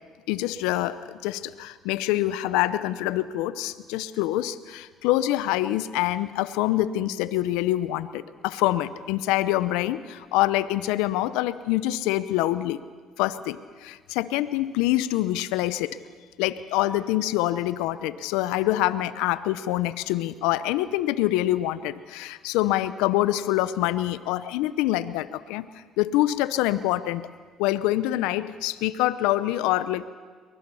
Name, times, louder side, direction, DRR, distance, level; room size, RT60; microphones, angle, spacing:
voice 1, 0.3-12.8 13.2-16.0 16.4-25.7 26.0-27.2 27.6-30.0, left 15 dB, 85° left, 15 dB, 0.7 m, -25 dB
23.5 x 20.0 x 7.0 m, 1.5 s
supercardioid pair, 75°, 0 cm